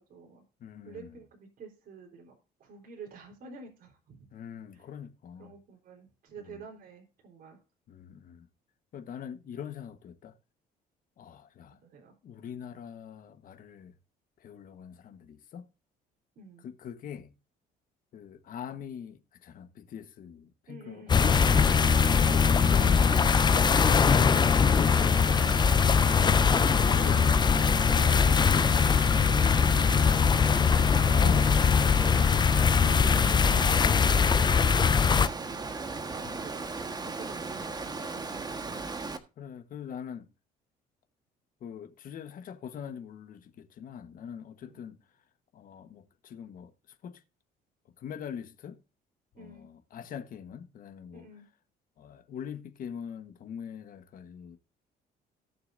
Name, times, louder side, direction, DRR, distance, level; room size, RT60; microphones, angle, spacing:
voice 1, 0.0-0.4 0.8-2.3 2.6-4.3 4.7-4.9 5.4-7.6 11.8-12.1 16.4-16.6 20.7-21.3 26.6-28.9 29.5-32.4 32.8-39.1 44.6-44.8 49.3-49.7 51.1-51.4, right 4 dB, 60° right, 4.2 m, -49 dB
voice 2, 0.6-1.1 4.3-5.5 7.9-8.5 8.9-10.3 11.2-11.8 12.2-13.9 14.4-15.6 16.6-17.3 18.1-21.5 22.1-23.2 24.7-26.0 26.4-27.3 27.9-28.3 29.3-29.8 31.0-31.6 32.8-33.2 39.4-40.3 41.6-45.0 45.5-46.7 47.0-47.2 48.0-48.8 49.4-51.3 52.0-54.6, left 8 dB, 55° left, 1.4 m, -42 dB
sound 1, 21.1-35.3, left 6 dB, 25° left, 0.5 m, -22 dB
Water, 21.2-39.2, right 3 dB, 25° right, 1.4 m, -37 dB
18.0 x 6.8 x 2.7 m
cardioid pair, 110°, 17 cm